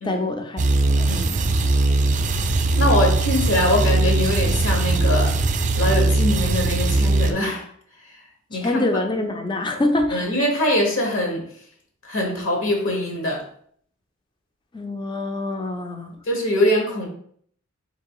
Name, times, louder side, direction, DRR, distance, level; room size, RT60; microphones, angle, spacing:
voice 1, 0.0-1.1 8.5-10.3 14.7-16.2, left 2 dB, 25° left, 5 dB, 0.5 m, -25 dB
sound 1, 0.6-7.3, right 2 dB, 35° right, 0.4 m, -20 dB
voice 2, 1.0-1.4 2.8-5.3 5.7-7.6 8.5-8.8 10.1-11.4 12.0-13.4 16.2-17.1, left 1 dB, 75° left, 1 dB, 1.2 m, -23 dB
3.8 x 2.8 x 4.7 m, 0.62 s
head